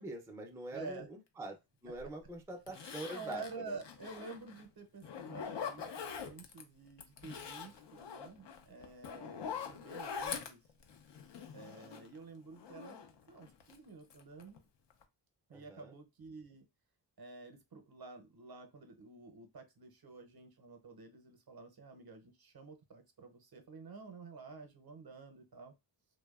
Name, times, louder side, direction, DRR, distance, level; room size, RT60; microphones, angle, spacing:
voice 1, 0.0-3.8 15.5-15.9, right 2 dB, 5° right, 3 dB, 0.4 m, -45 dB
voice 2, 0.7-1.1 3.0-10.6 11.5-13.0 13.3-14.6 15.5-16.6 17.2-25.7, right 3 dB, 50° right, 5 dB, 0.6 m, -50 dB
Zipper (clothing), 2.0-2.1 2.7-4.6 5.0-6.6 7.0-12.2 12.5-13.8 14.1-14.6 14.9-15.0, left 7 dB, 65° left, 0.5 m, -44 dB
2.6 x 2.1 x 2.3 m, 0.23 s
wide cardioid pair, 70°, 47 cm